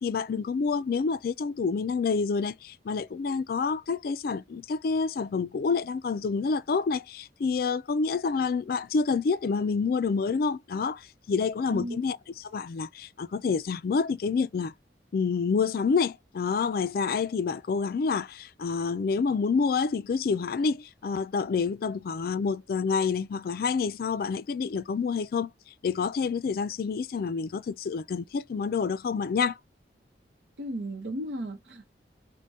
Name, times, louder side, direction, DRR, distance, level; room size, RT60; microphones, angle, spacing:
voice 1, 0.0-14.7 15.1-25.5 25.8-29.6, left 5 dB, 55° left, 0.3 m, -28 dB
voice 2, 30.6-31.9, equal, 85° right, 0.7 m, -34 dB
4.6 x 2.2 x 2.7 m
head